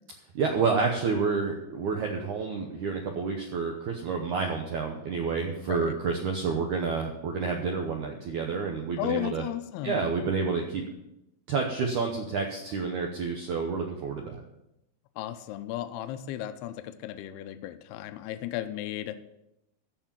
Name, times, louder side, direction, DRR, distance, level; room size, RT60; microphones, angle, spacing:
voice 1, 0.4-9.4 9.8-10.8 11.5-14.4, right 5 dB, 85° right, 2 dB, 1.7 m, -29 dB
voice 2, 9.0-10.2 15.2-19.2, left 13 dB, 80° left, 9 dB, 2.5 m, -35 dB
14.0 x 4.9 x 7.4 m, 0.87 s
omnidirectional pair, 4.9 m